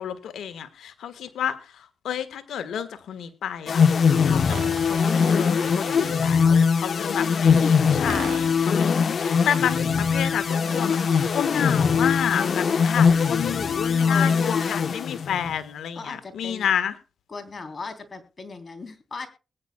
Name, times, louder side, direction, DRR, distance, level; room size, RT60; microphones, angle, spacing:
voice 1, 0.0-3.8 4.2-11.0 11.3-16.9, left 9 dB, 85° left, 12 dB, 1.3 m, -30 dB
sound 1, 3.7-15.5, left 6 dB, 60° left, 0.8 m, -21 dB
sound 2, 4.5-6.5 8.1-8.7 10.5-11.5, right 8 dB, 80° right, 2.0 m, -40 dB
voice 2, 7.2-8.4 14.0-14.8 15.9-16.7 17.3-19.3, left 4 dB, 45° left, 7 dB, 3.3 m, -38 dB
21.0 x 9.8 x 2.2 m, 0.31 s
cardioid pair, 65°, 0 cm